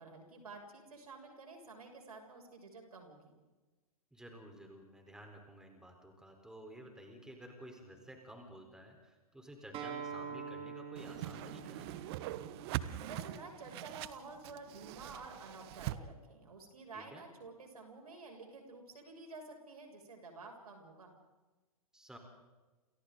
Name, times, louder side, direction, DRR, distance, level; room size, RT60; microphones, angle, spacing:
voice 1, 0.0-3.3 13.0-21.1, right 3 dB, 75° right, 2 dB, 7.1 m, -51 dB
voice 2, 4.1-11.9 16.9-17.2 21.9-22.2, right 1 dB, 5° right, 3 dB, 4.3 m, -53 dB
Acoustic guitar, 9.7-14.9, right 6 dB, 25° right, 3.3 m, -47 dB
Whoosh swoosh swish, 11.0-16.0, right 15 dB, 40° right, 1.2 m, -42 dB
30.0 x 29.0 x 4.0 m, 1.2 s
figure-of-eight pair, 110°, 19 cm